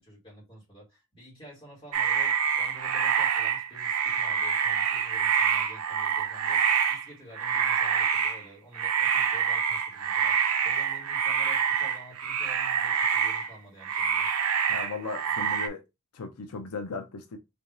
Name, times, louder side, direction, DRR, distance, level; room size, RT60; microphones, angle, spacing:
voice 1, 0.0-14.3, equal, 25° left, 2.6 m, -50 dB
sound 1, 1.9-7.1 7.3-8.5 8.7-13.6 13.8-15.7, right 7 dB, 85° right, 0.6 m, -26 dB
voice 2, 14.7-15.8 16.1-17.4, left 4 dB, 85° left, 0.6 m, -36 dB
3.7 x 3.3 x 2.6 m
head